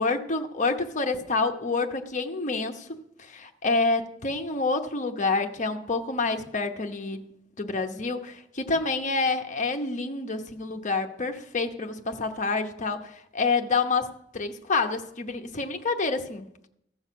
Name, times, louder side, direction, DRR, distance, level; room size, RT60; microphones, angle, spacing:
voice 1, 0.0-7.3 7.6-16.7, left 3 dB, 40° left, 0.9 m, -28 dB
15.5 x 6.3 x 6.1 m
head